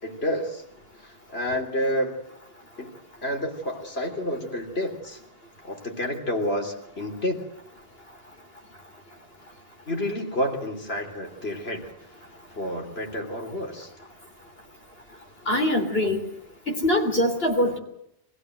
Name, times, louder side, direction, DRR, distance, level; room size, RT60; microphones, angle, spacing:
voice 1, 0.0-0.6 1.0-2.2 2.8-5.2 5.6-7.4 9.9-11.8 12.5-13.9, left 1 dB, 85° left, 1 dB, 3.6 m, -29 dB
voice 2, 15.5-16.2 16.7-17.8, left 1 dB, 70° left, 3 dB, 3.7 m, -23 dB
24.0 x 16.0 x 7.9 m, 0.79 s
omnidirectional pair, 1.0 m